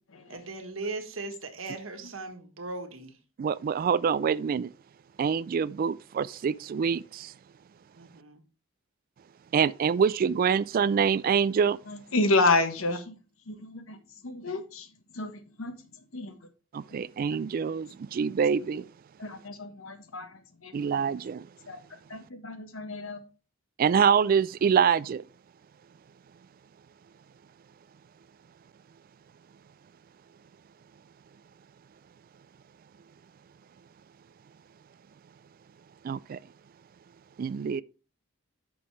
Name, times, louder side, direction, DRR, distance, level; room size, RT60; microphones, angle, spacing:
voice 1, 0.3-3.2 7.9-8.4, right 3 dB, 75° right, 1.5 m, -38 dB
voice 2, 3.4-4.7 5.2-7.3 9.5-11.8 16.7-18.9 20.7-21.5 23.8-25.2 36.0-36.4 37.4-37.8, right 6 dB, 45° right, 0.3 m, -25 dB
voice 3, 11.9-13.1 13.5-14.0 14.2-14.9 15.1-15.8 16.1-16.4 19.2-20.7 21.7-21.8 22.1-23.2, left 2 dB, 85° left, 1.2 m, -29 dB
9.1 x 6.2 x 3.2 m
head